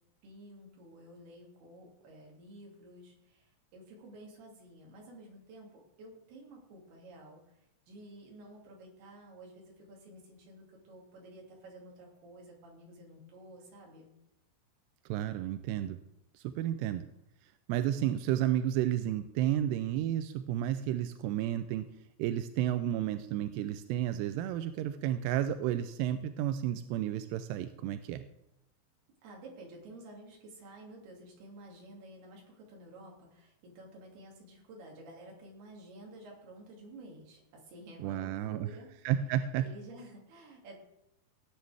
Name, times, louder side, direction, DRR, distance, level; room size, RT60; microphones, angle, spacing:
voice 1, 0.2-7.6 7.9-14.1 29.2-38.9 39.6-40.9, right 1 dB, 65° right, -1 dB, 4.3 m, -52 dB
voice 2, 15.1-16.0 16.4-17.1 17.7-21.9 22.2-28.2 38.0-38.7 39.0-39.7, right 11 dB, 85° right, 10 dB, 2.5 m, -32 dB
16.5 x 9.5 x 3.4 m, 0.84 s
omnidirectional pair, 5.1 m